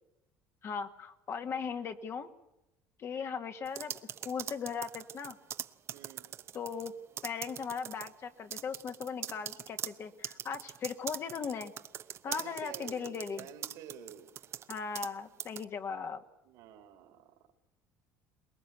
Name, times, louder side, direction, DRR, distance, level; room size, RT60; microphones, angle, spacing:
voice 1, 0.6-2.3 3.0-4.0 4.2-5.4 6.5-6.9 7.2-11.7 12.2-13.5 14.7-16.2, left 6 dB, 40° left, 7 dB, 1.8 m, -38 dB
sound 1, 3.7-6.9 7.2-8.1 8.5-15.1 15.4-15.6, right 9 dB, 45° right, 0.9 m, -41 dB
voice 2, 5.9-6.3 12.3-14.4 16.4-17.3, right 9 dB, 75° right, 7 dB, 3.2 m, -50 dB
23.5 x 20.5 x 8.2 m, 0.90 s
supercardioid pair, 110°, 6 cm